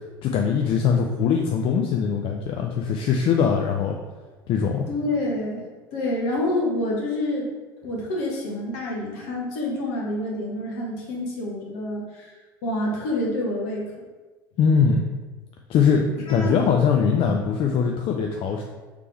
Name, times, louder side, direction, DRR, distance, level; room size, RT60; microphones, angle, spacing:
voice 1, 0.2-4.0 4.5-4.9 14.6-15.0 15.7-18.6, left 6 dB, 45° left, 2 dB, 0.4 m, -21 dB
voice 2, 4.9-7.5 7.8-12.3 12.6-13.8 16.3-16.6, left 1 dB, 65° left, -2 dB, 1.2 m, -27 dB
3.4 x 3.3 x 4.4 m, 1.3 s
hypercardioid pair, 65°, 12 cm